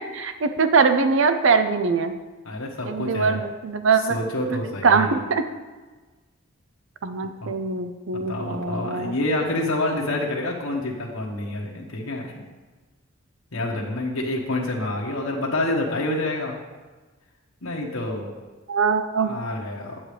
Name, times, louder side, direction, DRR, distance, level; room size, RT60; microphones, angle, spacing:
voice 1, 0.1-2.1 2.8-4.2 4.5-5.4 7.0-9.2 18.7-19.4, right 5 dB, 65° right, 9 dB, 0.5 m, -22 dB
voice 2, 2.4-3.4 4.1-5.2 7.4-7.5 8.1-12.4 13.5-16.6 17.6-18.3 19.2-20.0, left 1 dB, 90° left, -3 dB, 1.2 m, -27 dB
8.8 x 8.7 x 3.3 m, 1.3 s
head